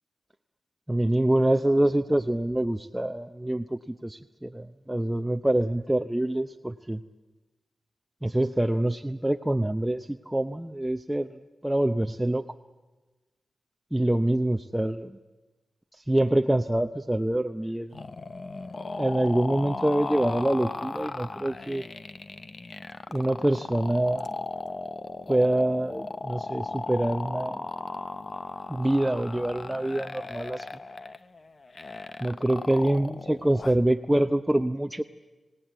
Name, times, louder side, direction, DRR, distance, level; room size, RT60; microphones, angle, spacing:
voice 1, 0.9-7.0 8.2-11.3 11.6-12.4 13.9-15.2 15.9-18.0 18.9-21.8 23.1-24.4 25.3-27.6 28.7-30.7 32.2-35.0, right 1 dB, 10° right, 6 dB, 0.7 m, -25 dB
sound 1, 17.9-33.9, left 3 dB, 50° left, 1.0 m, -37 dB
27.5 x 17.5 x 9.2 m, 1.2 s
cardioid pair, 55°, 0 cm